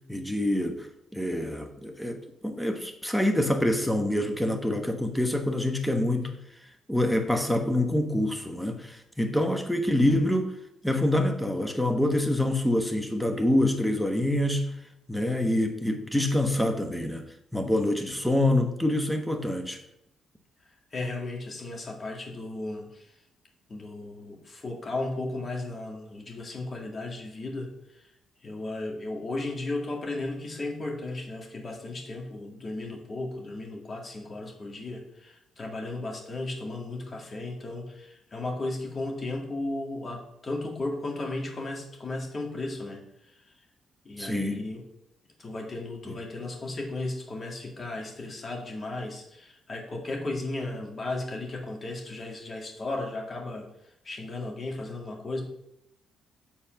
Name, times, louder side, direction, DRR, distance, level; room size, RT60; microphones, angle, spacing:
voice 1, 0.1-0.9 1.1-6.3 6.9-10.5 10.8-14.7 15.1-17.2 17.5-19.8 44.2-44.6 46.0-46.2, left 1 dB, 5° left, 1.2 m, -26 dB
voice 2, 20.9-23.1 23.7-28.1 28.4-43.0 44.0-44.8 45.4-53.7 54.0-55.4, left 2 dB, 35° left, 2.0 m, -35 dB
7.7 x 4.2 x 5.9 m
cardioid pair, 90°, 0 cm